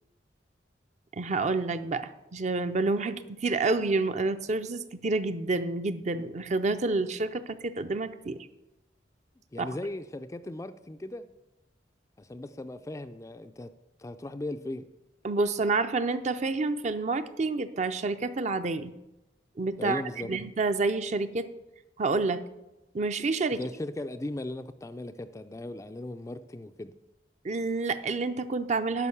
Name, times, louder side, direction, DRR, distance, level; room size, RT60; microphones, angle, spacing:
voice 1, 1.1-8.4 9.6-9.7 15.2-18.9 19.6-21.5 22.0-22.4 22.9-23.6 27.4-29.1, right 3 dB, 40° right, 10 dB, 0.5 m, -28 dB
voice 2, 9.5-11.3 12.2-13.7 14.0-14.8 19.8-20.3 23.6-26.9, left 1 dB, 15° left, 10 dB, 0.3 m, -37 dB
11.0 x 5.4 x 7.1 m, 0.96 s
head